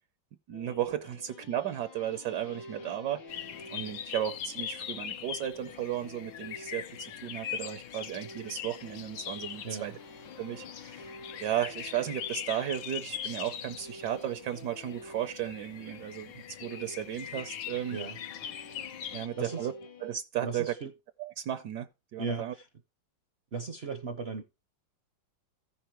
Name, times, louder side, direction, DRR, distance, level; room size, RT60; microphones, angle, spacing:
sound 1, 0.5-20.2, left 3 dB, 85° left, 2.1 m, -50 dB
voice 1, 0.5-3.4 3.7-9.9 10.4-11.1 11.4-18.0 19.1-19.7 20.0-20.7 21.2-22.5, right 11 dB, 75° right, 1.2 m, -35 dB
sound 2, 3.3-19.3, left 10 dB, 70° left, 0.7 m, -41 dB
voice 2, 19.1-19.7 20.4-20.9 22.2-22.6 23.5-24.4, right 4 dB, 55° right, 0.7 m, -37 dB
15.0 x 5.6 x 2.9 m
omnidirectional pair, 2.0 m